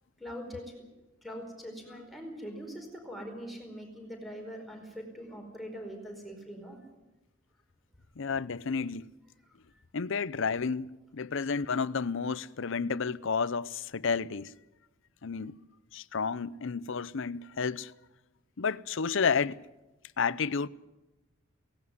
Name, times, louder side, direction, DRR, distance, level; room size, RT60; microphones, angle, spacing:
voice 1, 0.2-0.9 1.2-6.8 9.7-9.8, equal, ahead, 4.6 m, -42 dB
voice 2, 8.2-9.1 9.9-14.6 15.2-15.5 15.9-17.9 18.6-19.6 20.2-20.7, left 5 dB, 65° left, 0.6 m, -31 dB
18.0 x 17.0 x 9.6 m
head